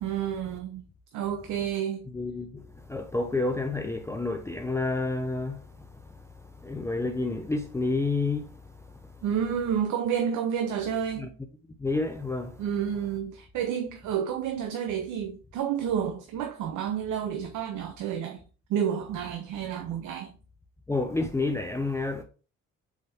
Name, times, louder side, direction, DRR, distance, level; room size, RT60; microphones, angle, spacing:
voice 1, 0.0-0.9 1.1-2.1 9.2-11.3 12.6-18.4 18.7-20.3, right 8 dB, 85° right, 0.6 m, -30 dB
voice 2, 2.1-6.2 6.6-8.6 11.2-11.3 11.8-12.6 20.9-22.2, left 3 dB, 10° left, 0.4 m, -30 dB
4.0 x 3.6 x 3.4 m
cardioid pair, 90°, 30 cm